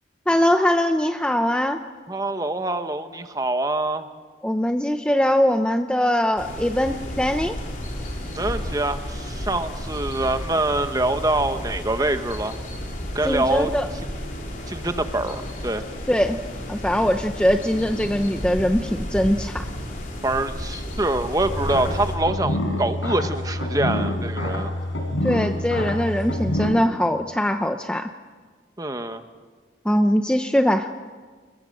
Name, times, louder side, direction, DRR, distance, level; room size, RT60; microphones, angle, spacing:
voice 1, 0.3-1.8 4.4-7.5 13.2-13.9 16.1-16.4 16.7-19.6 25.2-28.1 29.9-30.9, equal, 5° left, 6 dB, 0.7 m, -21 dB
voice 2, 2.1-4.1 8.3-12.6 13.1-13.7 14.7-15.8 20.2-24.7 28.8-29.2, right 2 dB, 20° right, 8 dB, 1.2 m, -25 dB
sound 1, 6.4-22.2, left 1 dB, 45° left, 4.0 m, -33 dB
sound 2, 21.4-26.7, left 1 dB, 90° left, 5.8 m, -27 dB
27.0 x 21.5 x 7.9 m, 1.5 s
head